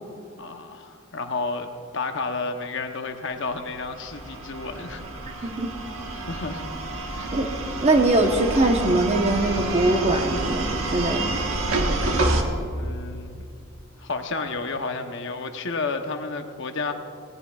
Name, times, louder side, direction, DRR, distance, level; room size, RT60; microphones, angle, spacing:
voice 1, 0.4-1.7 1.9-5.0 5.4-5.5 6.1-6.7 7.2-7.3 12.7-13.5 14.0-16.9, left 3 dB, 55° left, 6 dB, 0.9 m, -31 dB
sound 1, 3.6-12.4, right 2 dB, 75° right, 1.4 m, -28 dB
voice 2, 7.8-11.4, right 2 dB, 30° right, 4 dB, 1.0 m, -22 dB
19.0 x 18.0 x 2.4 m, 2.4 s
head